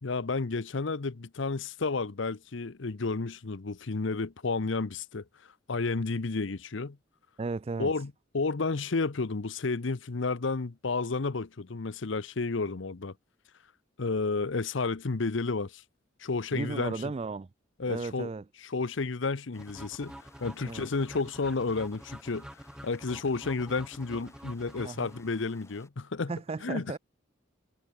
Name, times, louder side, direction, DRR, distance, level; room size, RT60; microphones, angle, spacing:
voice 1, 0.0-5.2 5.7-7.0 7.8-13.1 14.0-15.8 16.2-16.9 17.8-18.3 18.7-22.5 22.8-26.3 26.6-27.0, left 3 dB, 65° left, 0.8 m, -31 dB
voice 2, 7.4-7.9 16.5-17.5 17.9-18.5 20.6-20.9 24.8-25.1 26.3-27.0, right 3 dB, 30° right, 0.4 m, -35 dB
sound 1, 19.5-25.9, left 2 dB, 15° left, 1.8 m, -60 dB
sound 2, 19.6-25.5, equal, 5° right, 1.2 m, -47 dB
head